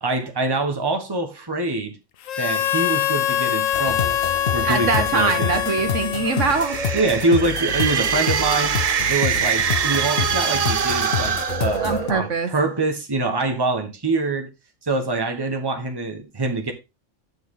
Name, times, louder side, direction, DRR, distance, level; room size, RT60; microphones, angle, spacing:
voice 1, 0.0-2.0 2.4-4.2 4.5-5.5 6.9-8.8 9.1-14.5 14.8-16.7, right 3 dB, 20° right, 1.4 m, -24 dB
Harmonica, 2.3-7.1, left 10 dB, 90° left, 1.1 m, -24 dB
sound 1, 3.7-12.1, left 8 dB, 55° left, 0.9 m, -28 dB
voice 2, 4.6-6.8 11.8-12.5, right 4 dB, 75° right, 1.6 m, -22 dB
sound 2, 6.2-12.3, right 7 dB, 50° right, 0.4 m, -24 dB
10.5 x 6.4 x 3.8 m
omnidirectional pair, 1.3 m